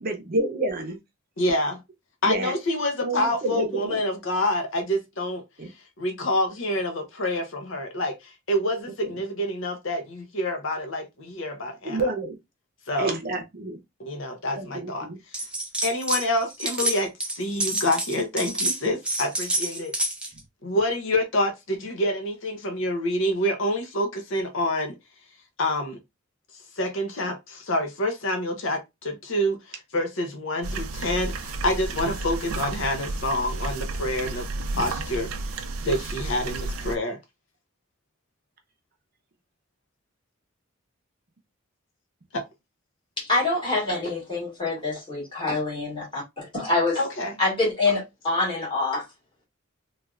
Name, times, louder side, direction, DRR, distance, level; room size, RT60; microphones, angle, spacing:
voice 1, 0.0-1.0 2.2-2.5 3.0-4.0 5.6-5.7 11.9-12.4 13.0-13.8 14.5-15.2 34.7-34.8, right 2 dB, 45° right, 0.6 m, -29 dB
voice 2, 1.4-1.8 2.2-5.4 6.0-12.1 12.9-13.1 14.0-15.4 15.8-19.9 20.6-24.9 25.6-26.0 26.8-29.6 29.9-34.5 34.7-35.3 35.8-37.2 42.3-42.4 47.0-47.3, left 1 dB, 65° left, 0.7 m, -27 dB
sound 1, 15.3-16.2 16.5-20.4, right 1 dB, 5° right, 0.4 m, -28 dB
sound 2, 30.6-37.0, right 3 dB, 90° right, 0.5 m, -32 dB
voice 3, 43.2-47.0 47.4-49.1, left 2 dB, 25° left, 1.7 m, -26 dB
3.3 x 2.3 x 2.4 m
head